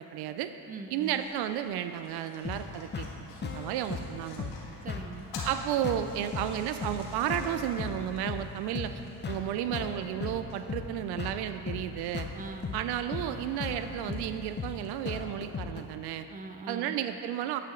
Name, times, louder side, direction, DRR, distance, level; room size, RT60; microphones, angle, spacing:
voice 1, 0.0-0.5 0.9-4.5 5.4-8.9 9.3-12.3 12.7-16.3 16.7-17.6, right 11 dB, 70° right, 9 dB, 0.5 m, -33 dB
voice 2, 0.7-1.2 4.8-5.3 12.3-12.8 16.3-17.0, right 3 dB, 20° right, 6 dB, 0.6 m, -42 dB
sound 1, 1.0-15.2, left 2 dB, 85° left, 1.9 m, -52 dB
sound 2, 2.4-15.8, left 5 dB, 25° left, 0.8 m, -38 dB
9.4 x 8.3 x 3.8 m, 3.0 s
supercardioid pair, 90°, 41 cm